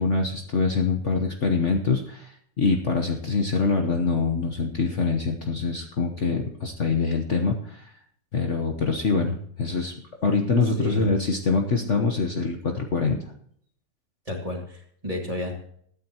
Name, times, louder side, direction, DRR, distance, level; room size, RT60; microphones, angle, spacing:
voice 1, 0.0-2.3 2.6-7.8 8.3-9.9 10.2-13.2, left 4 dB, 45° left, 3 dB, 1.3 m, -24 dB
voice 2, 10.8-11.1 14.3-15.5, left 1 dB, 20° right, 1 dB, 2.2 m, -32 dB
21.5 x 9.4 x 2.9 m, 0.65 s
omnidirectional pair, 1.9 m